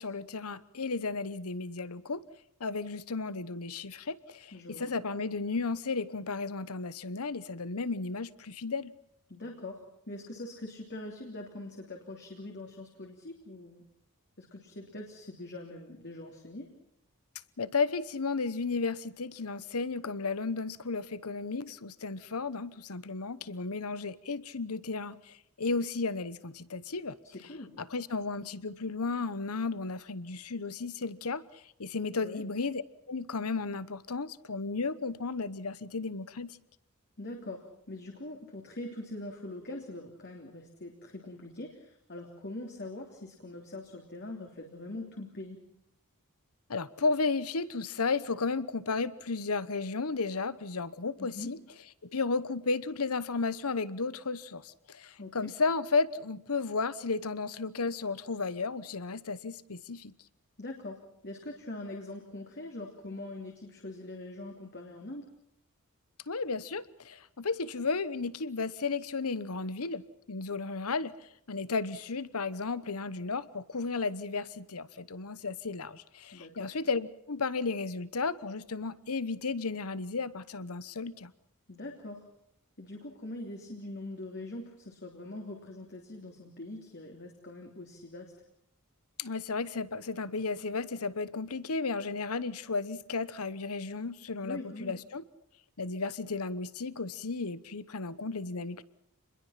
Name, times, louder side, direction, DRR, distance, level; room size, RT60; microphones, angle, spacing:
voice 1, 0.0-2.2 2.6-8.9 17.6-27.2 27.8-36.5 46.7-51.6 52.1-60.1 66.3-71.1 71.5-81.3 89.2-95.2 95.8-98.8, left 4 dB, 75° left, 16 dB, 1.0 m, -34 dB
voice 2, 4.5-4.9 9.3-13.8 14.4-16.7 27.3-27.8 32.2-32.4 37.2-45.6 51.2-51.6 55.2-55.5 60.6-65.3 76.3-76.7 81.7-82.3 82.8-88.3 94.4-95.0, left 2 dB, 50° left, 1 dB, 3.2 m, -43 dB
28.0 x 21.5 x 5.8 m, 0.77 s
head